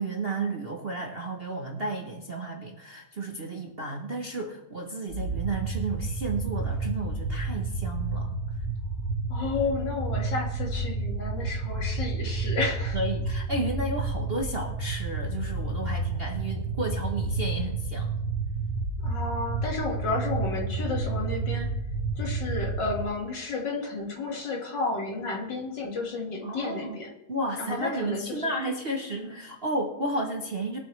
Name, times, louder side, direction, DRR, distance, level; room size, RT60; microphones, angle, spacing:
voice 1, 0.0-8.4 12.9-18.2 26.4-27.0 27.3-30.8, right 2 dB, 40° right, 1 dB, 0.9 m, -32 dB
sound 1, 5.1-23.0, right 3 dB, 70° right, 1.8 m, -30 dB
voice 2, 9.3-13.0 19.0-21.7 22.2-27.1 27.6-28.5, left 3 dB, 60° left, 1 dB, 2.5 m, -32 dB
21.0 x 7.7 x 3.2 m, 0.95 s
omnidirectional pair, 2.2 m